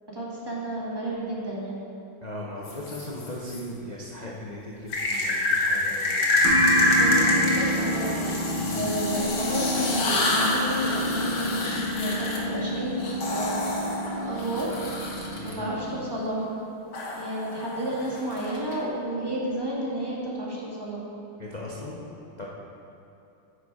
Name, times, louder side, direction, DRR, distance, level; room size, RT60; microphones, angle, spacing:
voice 1, 0.1-1.8 6.9-8.2 8.7-13.6 13.8-13.9 14.2-14.8 15.4-16.5 17.2-21.0, right 1 dB, 15° right, -6 dB, 1.5 m, -31 dB
voice 2, 2.2-6.2 8.5-8.8 15.4-15.6 21.4-22.0 22.4-22.5, left 1 dB, 65° left, -5 dB, 0.4 m, -38 dB
sound 1, 2.6-3.6 4.9-15.5 16.9-18.7, left 2 dB, 90° left, 2.2 m, -27 dB
sound 2, 6.4-15.9, equal, 70° right, 1.8 m, -30 dB
9.2 x 6.8 x 4.8 m, 2.9 s
omnidirectional pair, 2.2 m